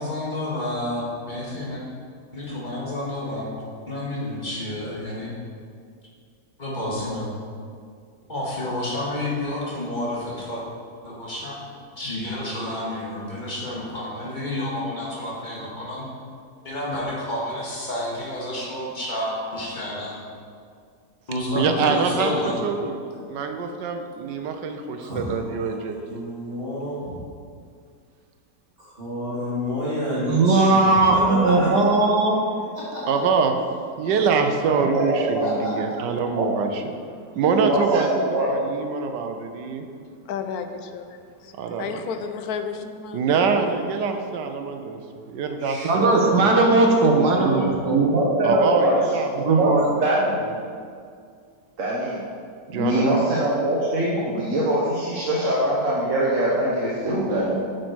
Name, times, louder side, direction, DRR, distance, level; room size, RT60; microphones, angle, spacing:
voice 1, 0.0-1.8 2.3-3.5 3.9-5.3 6.6-7.3 8.3-10.6 11.0-11.5 12.0-16.0 16.6-20.1 21.3-22.6, left 1 dB, 25° left, -5 dB, 2.0 m, -29 dB
voice 2, 21.5-22.3 22.6-23.0 23.3-26.2 33.1-33.5 34.0-36.8 37.4-39.9 41.6-41.9 43.1-45.0 45.3-46.5 48.4-49.9 50.4-50.5 52.7-53.1, right 5 dB, 90° right, 6 dB, 1.4 m, -25 dB
voice 3, 25.0-27.2 28.8-31.8 32.7-33.1 35.2-35.7 45.6-46.5, equal, 35° right, -10 dB, 2.7 m, -30 dB
voice 4, 30.2-32.4 45.8-48.0 49.4-49.9, right 2 dB, 70° right, 1 dB, 1.8 m, -18 dB
voice 5, 34.7-35.5 36.2-36.5 37.4-38.5 47.3-49.0 49.3-49.7 50.0-50.5 51.8-52.2 52.7-57.6, right 1 dB, 50° right, -6 dB, 1.5 m, -23 dB
voice 6, 40.3-43.5, left 6 dB, 70° left, 8 dB, 1.1 m, -33 dB
9.4 x 6.5 x 4.6 m, 2.2 s
omnidirectional pair, 1.8 m